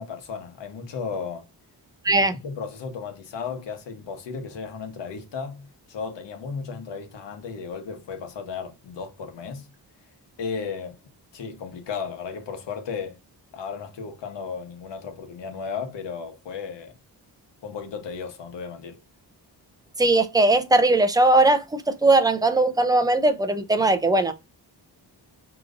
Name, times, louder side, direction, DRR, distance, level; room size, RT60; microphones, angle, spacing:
voice 1, 0.0-1.5 2.1-9.7 10.4-11.0 11.3-13.2 13.5-16.9 17.6-19.0, left 5 dB, 85° left, 1.1 m, -35 dB
voice 2, 20.0-24.3, right 2 dB, 10° right, 0.4 m, -19 dB
5.0 x 3.0 x 2.4 m
wide cardioid pair, 160°, 42 cm